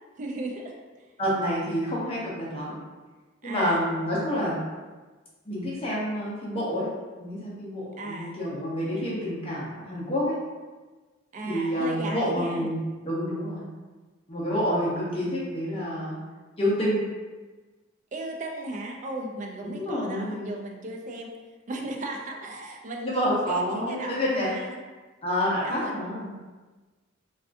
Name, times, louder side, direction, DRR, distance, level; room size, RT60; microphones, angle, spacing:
voice 1, 0.2-0.8 3.4-3.8 8.0-8.4 11.3-12.7 18.1-21.3 21.7-24.8 25.6-26.0, right 2 dB, 40° right, 1 dB, 0.4 m, -36 dB
voice 2, 1.2-2.8 3.4-4.6 5.4-6.8 7.2-10.3 11.4-12.8 13.0-13.7 14.3-16.2 16.6-17.0 19.6-20.5 23.0-24.5 25.2-26.3, equal, 30° left, -7 dB, 0.7 m, -28 dB
3.4 x 2.4 x 2.5 m, 1.3 s
head